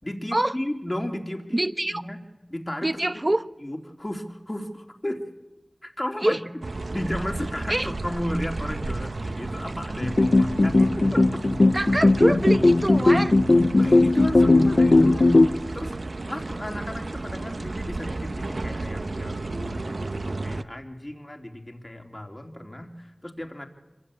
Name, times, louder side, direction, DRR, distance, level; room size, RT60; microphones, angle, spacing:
voice 1, 0.0-1.6 1.9-2.2 2.5-2.9 3.6-5.2 5.8-6.4 6.9-11.4 13.7-15.9 16.2-23.7, left 1 dB, 30° left, 3 dB, 3.3 m, -34 dB
voice 2, 1.5-2.0 2.8-3.4 6.2-6.4 7.7-7.9 11.7-13.4, right 1 dB, 35° right, 10 dB, 1.2 m, -24 dB
sound 1, 6.6-20.6, right 2 dB, 75° right, 1.0 m, -33 dB
sound 2, 10.0-15.5, left 2 dB, 60° left, 0.9 m, -18 dB
26.5 x 23.0 x 8.6 m, 1.0 s
wide cardioid pair, 40°, 0 cm